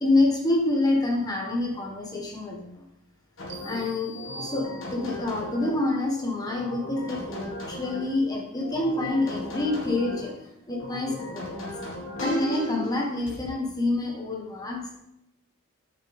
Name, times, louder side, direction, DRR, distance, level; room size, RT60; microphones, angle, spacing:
voice 1, 0.0-2.8 3.6-10.3 10.7-11.7 12.2-15.0, left 2 dB, 15° left, 0 dB, 1.4 m, -27 dB
sound 1, 3.4-5.9 6.5-8.2 8.6-10.3 10.7-13.4, equal, 65° left, 2.0 m, -35 dB
sound 2, 3.5-5.3, right 1 dB, 55° right, 1.0 m, -43 dB
8.6 x 7.2 x 3.5 m, 0.80 s
head